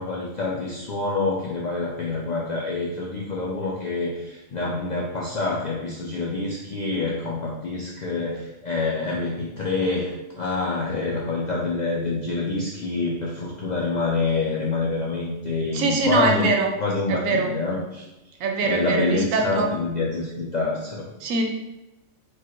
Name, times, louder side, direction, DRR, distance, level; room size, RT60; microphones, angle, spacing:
voice 1, 0.0-16.5 16.8-18.1 18.6-21.1, left 3 dB, 70° left, -4 dB, 0.4 m, -27 dB
voice 2, 15.7-16.7 17.1-17.5 18.4-19.7 21.2-21.4, right 3 dB, 85° right, 3 dB, 1.0 m, -22 dB
4.6 x 2.3 x 2.9 m, 0.99 s
omnidirectional pair, 1.3 m